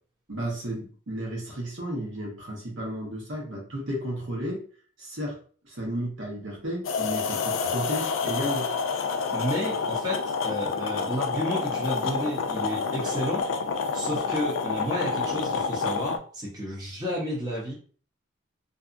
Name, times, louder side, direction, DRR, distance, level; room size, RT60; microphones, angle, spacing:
voice 1, 0.3-4.6 5.0-5.4 5.6-8.7, equal, 70° right, -1 dB, 1.0 m, -33 dB
sound 1, 6.8-16.2, left 5 dB, 65° left, 0.3 m, -28 dB
voice 2, 9.3-13.5 13.9-17.7, equal, 20° right, -5 dB, 0.7 m, -31 dB
2.6 x 2.3 x 2.4 m, 0.42 s
head